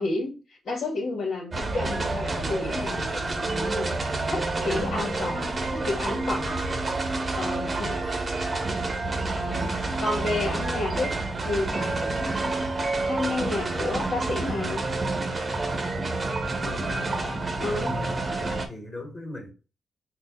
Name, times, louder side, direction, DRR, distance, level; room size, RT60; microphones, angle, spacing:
voice 1, 0.0-3.9 4.3-6.7 7.4-8.2 9.2-9.7 10.0-11.1 11.4-12.5 13.0-14.8 17.6-18.0, left 2 dB, 70° left, 1.4 m, -31 dB
sound 1, 1.5-18.7, right 2 dB, 35° right, 0.8 m, -28 dB
voice 2, 6.6-7.0 16.6-17.2 17.6-19.5, left 2 dB, 20° left, 1.7 m, -39 dB
4.0 x 2.3 x 3.6 m
cardioid pair, 75°, 0 cm